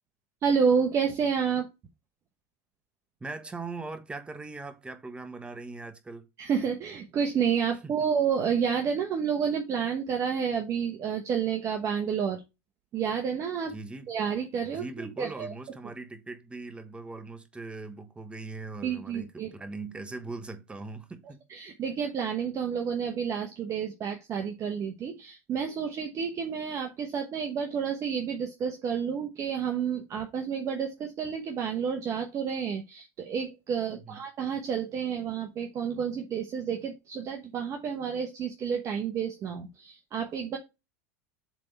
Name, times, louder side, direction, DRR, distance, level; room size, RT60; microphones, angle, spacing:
voice 1, 0.4-1.7 6.4-12.4 12.9-13.8 14.1-14.8 15.2-15.5 18.8-19.5 21.5-40.6, right 7 dB, 40° right, 1.0 m, -30 dB
voice 2, 3.2-6.3 13.7-14.1 14.6-21.4 33.9-34.2, right 3 dB, 15° right, 1.1 m, -40 dB
7.4 x 3.5 x 4.1 m
supercardioid pair, 110°, 8 cm